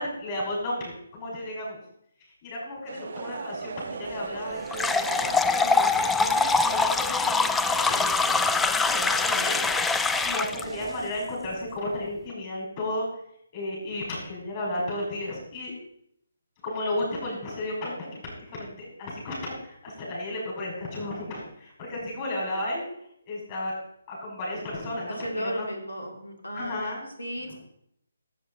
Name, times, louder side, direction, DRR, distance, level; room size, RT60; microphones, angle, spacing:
voice 1, 0.0-1.8 2.2-8.2 8.6-9.7 10.2-13.1 13.5-15.7 16.6-22.8 23.3-23.7 24.1-25.7 26.5-27.1 27.5-27.6, left 1 dB, 35° left, -5 dB, 5.5 m, -33 dB
sound 1, 2.9-11.1, right 6 dB, 55° right, 0.6 m, -38 dB
sound 2, 4.7-10.6, left 4 dB, 5° left, 0.3 m, -24 dB
voice 2, 25.1-26.9 27.2-27.6, equal, 85° left, 3 dB, 2.6 m, -34 dB
13.5 x 7.6 x 4.2 m, 0.72 s
figure-of-eight pair, 145°, 0 cm